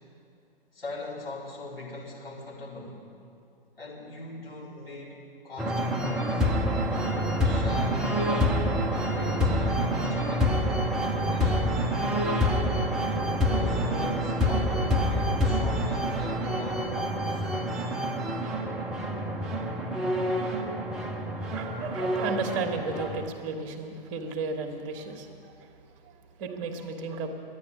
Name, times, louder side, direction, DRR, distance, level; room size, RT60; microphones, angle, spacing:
voice 1, 0.7-3.1 3.8-6.5 7.4-8.7 9.2-11.7 13.5-17.5, left 2 dB, 75° left, -5 dB, 4.4 m, -41 dB
sound 1, 5.6-23.3, equal, ahead, 0.5 m, -27 dB
voice 2, 21.3-27.3, right 4 dB, 30° right, 4 dB, 1.3 m, -34 dB
12.5 x 10.0 x 9.2 m, 2.4 s
figure-of-eight pair, 120°, 29 cm